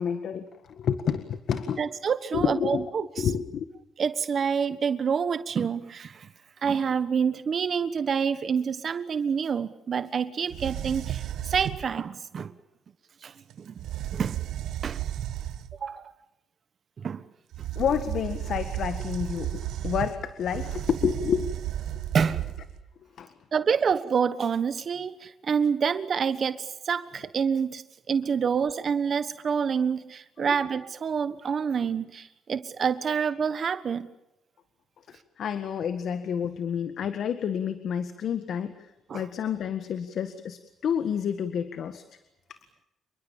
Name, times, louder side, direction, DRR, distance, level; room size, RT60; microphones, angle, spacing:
voice 1, 0.0-1.8 2.3-2.8 3.2-3.7 17.8-21.7 21.9-22.0 23.2-23.3 30.4-30.6 35.1-42.0 42.5-42.6, left 8 dB, 65° left, 10 dB, 1.7 m, -29 dB
voice 2, 1.8-3.1 4.0-6.3 6.6-12.5 13.2-13.7 14.1-14.4 14.8-15.0 15.8-16.1 17.0-17.2 22.1-22.5 23.5-34.1 39.1-39.2, right 6 dB, 50° right, 13 dB, 1.3 m, -27 dB
sound 1, 10.5-11.9 13.5-13.6 13.8-15.8 17.5-22.9, right 12 dB, 80° right, 1.4 m, -33 dB
28.0 x 23.0 x 7.2 m, 0.93 s
cardioid pair, 90°, 0 cm